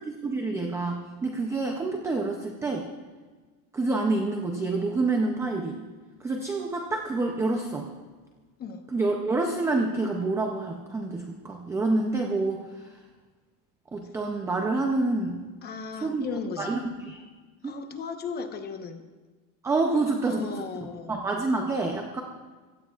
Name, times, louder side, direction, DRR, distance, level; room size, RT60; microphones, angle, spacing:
voice 1, 0.2-2.9 3.7-5.8 6.2-7.9 8.9-12.9 13.9-15.4 16.0-16.2 16.6-17.2 17.6-17.8 19.6-20.5 21.1-22.2, right 3 dB, 5° right, 2 dB, 0.4 m, -27 dB
voice 2, 15.6-16.8 17.6-19.0 20.2-21.2, left 5 dB, 20° left, 6 dB, 0.9 m, -36 dB
23.5 x 16.5 x 2.4 m, 1.4 s
supercardioid pair, 170°, 44 cm